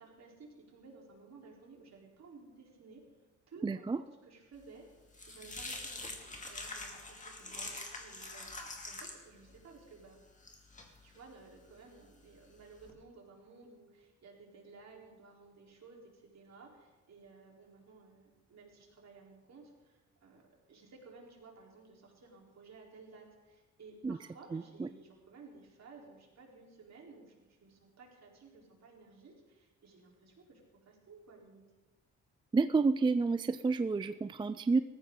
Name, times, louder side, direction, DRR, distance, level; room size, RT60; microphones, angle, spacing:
voice 1, 0.0-3.0 3.5-4.8 5.3-10.2 11.0-30.6 30.9-31.6, right 4 dB, 55° right, -1 dB, 4.1 m, -56 dB
voice 2, 3.6-4.0 24.0-24.2 24.5-24.9 32.5-34.8, right 4 dB, 15° right, 12 dB, 0.4 m, -30 dB
sound 1, 4.6-12.9, left 2 dB, 25° left, 2.5 m, -46 dB
18.0 x 14.5 x 3.9 m, 1.1 s
cardioid pair, 85°, 32 cm